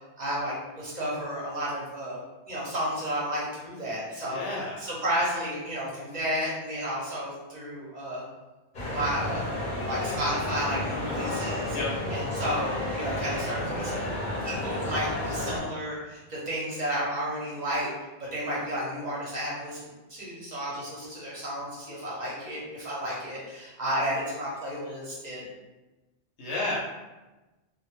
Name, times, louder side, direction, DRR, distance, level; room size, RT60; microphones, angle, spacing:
voice 1, 0.2-2.2 2.5-8.2 8.9-9.5 9.9-11.8 12.1-14.1 14.4-17.9 18.2-25.5, equal, 45° right, -6 dB, 0.7 m, -32 dB
voice 2, 4.3-4.9 11.7-11.9 26.4-26.8, left 2 dB, 75° left, -5 dB, 0.9 m, -31 dB
sound 1, 8.7-15.6, left 1 dB, 45° left, 0.7 m, -31 dB
2.1 x 2.1 x 3.0 m, 1.1 s
omnidirectional pair, 1.2 m